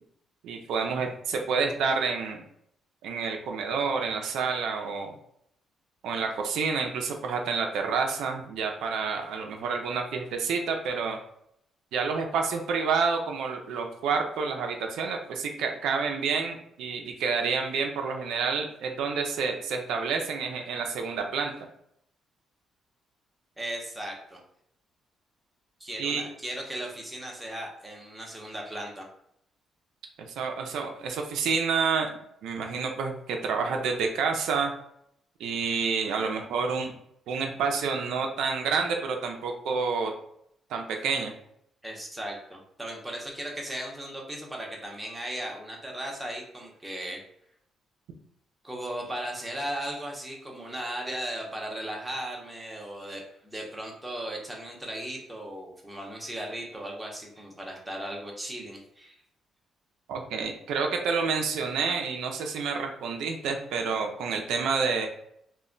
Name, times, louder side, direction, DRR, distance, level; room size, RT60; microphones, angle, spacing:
voice 1, 0.4-2.4 3.0-5.1 6.0-11.2 11.9-21.5 26.0-26.2 30.4-32.1 32.4-34.7 35.4-36.9 37.3-40.1 40.7-41.3 60.1-65.1, right 5 dB, 85° right, 3 dB, 0.4 m, -29 dB
voice 2, 23.6-24.4 25.8-29.1 41.8-47.2 48.6-59.1, right 1 dB, 5° right, -1 dB, 0.7 m, -37 dB
2.2 x 2.1 x 3.7 m, 0.73 s
cardioid pair, 110°, 0 cm